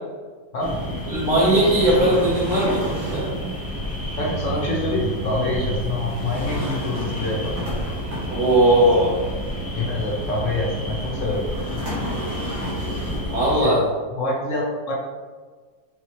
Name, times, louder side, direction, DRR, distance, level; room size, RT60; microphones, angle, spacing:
voice 1, 0.5-0.9 4.2-7.6 9.7-11.6 12.1-12.2 13.5-13.7 14.1-14.9, left 2 dB, 60° left, -3 dB, 0.8 m, -26 dB
sound 1, 0.6-13.6, equal, 20° left, 0.6 m, -30 dB
voice 2, 1.1-3.3 8.3-9.2 13.3-13.8, right 1 dB, 55° right, -9 dB, 1.4 m, -18 dB
sound 2, 1.2-3.4 6.0-8.7 11.4-13.4, equal, 75° right, 2.0 m, -32 dB
5.6 x 2.8 x 3.0 m, 1.5 s
omnidirectional pair, 2.1 m